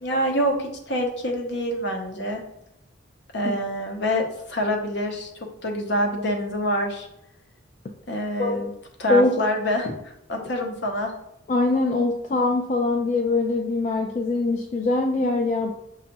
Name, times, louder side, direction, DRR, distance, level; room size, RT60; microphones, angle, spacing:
voice 1, 0.0-2.4 3.3-5.3 5.6-7.1 8.1-8.7 9.0-11.1, equal, 60° left, 3 dB, 0.7 m, -26 dB
voice 2, 11.5-15.7, left 3 dB, 40° left, 1 dB, 0.3 m, -22 dB
6.2 x 2.3 x 2.9 m, 0.80 s
head